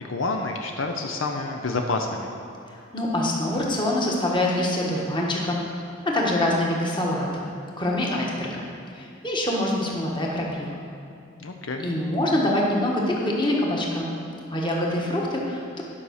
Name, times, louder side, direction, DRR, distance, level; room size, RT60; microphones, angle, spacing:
voice 1, 0.0-2.3 11.4-11.8, left 3 dB, 75° left, 3 dB, 0.6 m, -28 dB
voice 2, 2.7-5.6 6.0-7.5 7.8-8.6 8.9-10.7 11.8-14.1 14.5-15.8, left 1 dB, 25° left, -2 dB, 1.3 m, -25 dB
9.9 x 5.5 x 6.4 m, 2.6 s
head